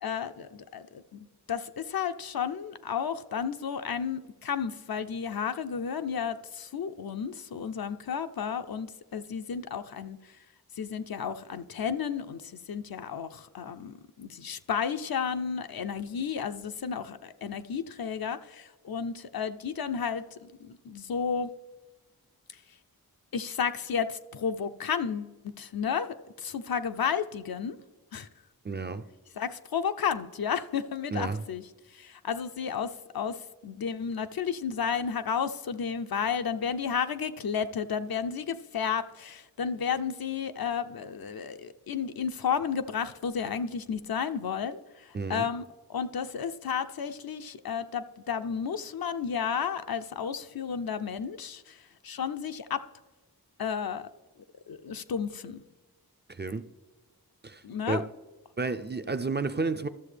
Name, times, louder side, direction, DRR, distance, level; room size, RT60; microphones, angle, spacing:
voice 1, 0.0-10.4 10.8-21.5 22.5-22.6 23.3-27.8 28.1-28.3 29.4-31.6 31.9-45.6 45.9-52.8 53.6-54.1 54.7-55.6 57.6-58.0, left 7 dB, 65° left, 0.6 m, -32 dB
voice 2, 28.6-29.0 31.1-31.4 45.1-45.5 56.3-56.6 57.4-58.1 58.6-59.9, right 4 dB, 30° right, 0.4 m, -31 dB
12.5 x 7.0 x 3.3 m
wide cardioid pair, 45°, 38 cm